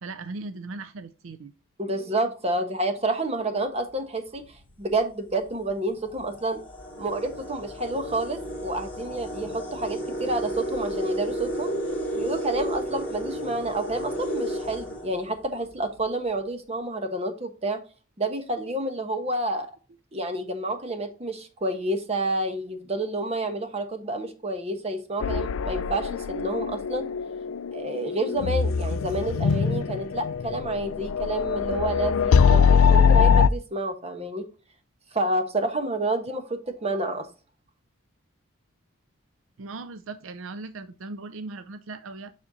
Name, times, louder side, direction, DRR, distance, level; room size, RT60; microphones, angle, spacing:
voice 1, 0.0-1.5 39.6-42.3, right 3 dB, 65° right, 0.5 m, -38 dB
voice 2, 1.8-4.4 4.8-6.6 7.0-11.7 12.1-17.8 18.2-19.7 20.1-27.1 27.7-34.4 35.1-37.3, right 2 dB, 30° right, 1.1 m, -29 dB
sound 1, 4.4-4.6 5.5-5.6 6.0-15.8, right 1 dB, 5° left, 2.1 m, -33 dB
sound 2, 25.2-33.5, left 6 dB, 65° left, 0.4 m, -22 dB
7.2 x 6.4 x 2.7 m
head